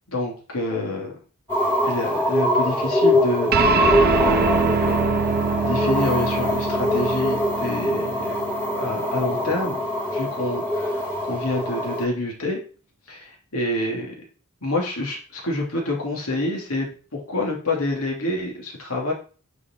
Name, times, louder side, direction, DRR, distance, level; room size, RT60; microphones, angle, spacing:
voice 1, 0.1-1.1 1.8-3.5 4.2-4.8 5.6-8.4 8.7-9.8 10.1-12.6 13.1-14.1 14.6-19.1, left 2 dB, 75° left, -1 dB, 2.7 m, -27 dB
sound 1, 1.5-12.0, left 1 dB, 10° left, 2.4 m, -23 dB
sound 2, 3.5-10.3, right 6 dB, 45° right, 0.3 m, -26 dB
9.2 x 5.0 x 4.5 m, 0.38 s
head